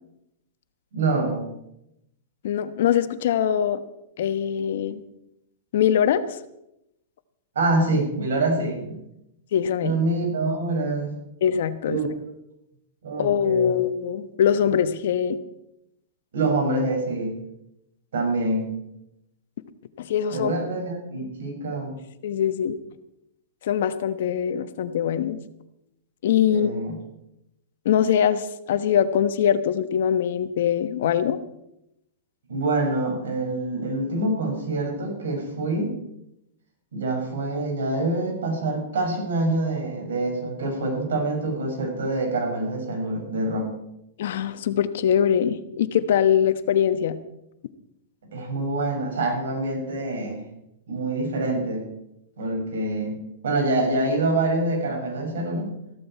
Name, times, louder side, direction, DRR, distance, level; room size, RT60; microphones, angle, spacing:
voice 1, 0.9-1.5 7.5-9.0 9.8-11.1 11.9-12.1 13.0-13.7 16.3-17.4 18.1-18.7 20.3-21.9 26.5-26.9 32.5-36.0 36.9-43.7 48.3-50.5 50.9-51.9 52.4-53.2 53.4-55.7, right 2 dB, 85° right, 2 dB, 5.9 m, -26 dB
voice 2, 2.4-3.8 4.2-5.0 5.7-6.4 9.5-10.0 11.4-12.0 13.2-15.4 20.0-20.8 22.2-22.8 23.6-25.4 26.2-26.7 27.8-31.4 44.2-47.2, left 9 dB, 65° left, 11 dB, 1.1 m, -22 dB
14.5 x 14.0 x 4.4 m, 0.83 s
hypercardioid pair, 155°, 0 cm